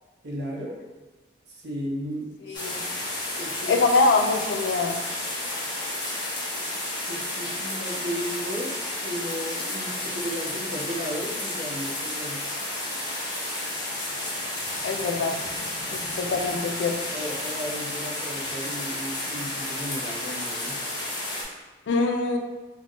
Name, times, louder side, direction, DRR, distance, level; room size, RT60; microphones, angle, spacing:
voice 1, 0.2-0.8 1.5-2.9 3.3-3.7 7.1-12.4 17.1-20.8, equal, 70° right, -2 dB, 0.6 m, -35 dB
voice 2, 2.5-2.8 3.7-5.0 14.8-15.4 15.9-17.0 21.9-22.4, left 3 dB, 90° left, 3 dB, 0.4 m, -24 dB
sound 1, 2.5-21.4, left 1 dB, 25° left, 0.6 m, -32 dB
2.3 x 2.1 x 3.6 m, 1.2 s
head